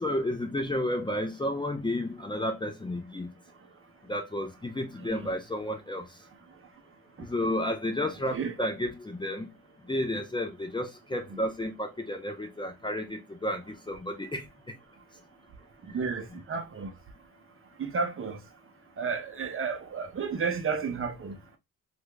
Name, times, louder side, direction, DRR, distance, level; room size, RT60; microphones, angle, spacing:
voice 1, 0.0-3.3 4.1-6.0 7.3-9.5 9.9-14.4 16.3-16.4, left 1 dB, 15° left, 0.6 m, -32 dB
voice 2, 15.9-16.9 17.8-18.4 19.0-21.3, right 5 dB, 40° right, 0.7 m, -32 dB
2.8 x 2.5 x 3.3 m
cardioid pair, 110°, 34 cm